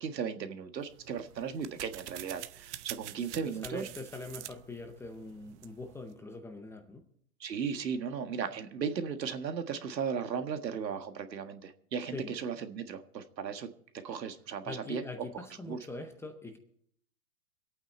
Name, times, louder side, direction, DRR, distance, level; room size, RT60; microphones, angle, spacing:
voice 1, 0.0-3.9 7.4-13.7 14.0-15.0 15.3-15.8, right 6 dB, 90° right, 8 dB, 1.7 m, -36 dB
sound 1, 0.8-6.2, right 14 dB, 45° right, 0.8 m, -47 dB
voice 2, 3.6-7.1 12.1-12.3 14.7-16.6, left 2 dB, 5° left, 6 dB, 0.6 m, -43 dB
24.5 x 9.0 x 4.3 m, 0.66 s
hypercardioid pair, 135°, 49 cm